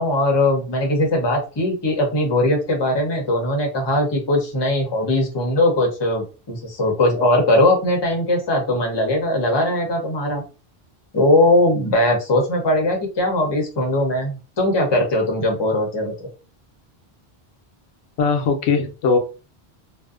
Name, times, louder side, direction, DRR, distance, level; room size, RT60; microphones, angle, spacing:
voice 1, 0.0-10.4 11.1-16.3, left 1 dB, 30° left, 1 dB, 0.7 m, -20 dB
voice 2, 18.2-19.2, left 4 dB, 90° left, 4 dB, 0.8 m, -19 dB
2.5 x 2.0 x 2.3 m, 0.33 s
omnidirectional pair, 1.1 m